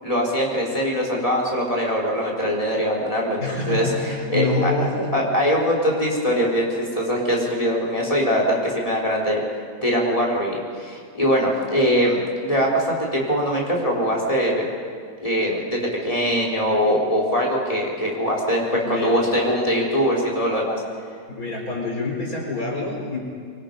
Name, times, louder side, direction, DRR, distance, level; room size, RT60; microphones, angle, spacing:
voice 1, 0.0-4.7 5.1-9.4 9.8-14.8 15.2-20.8, equal, 25° left, -2 dB, 4.1 m, -22 dB
voice 2, 3.4-5.3 18.8-19.2 21.3-23.2, left 2 dB, 80° left, -1 dB, 4.4 m, -26 dB
24.5 x 23.5 x 5.3 m, 2.1 s
omnidirectional pair, 1.5 m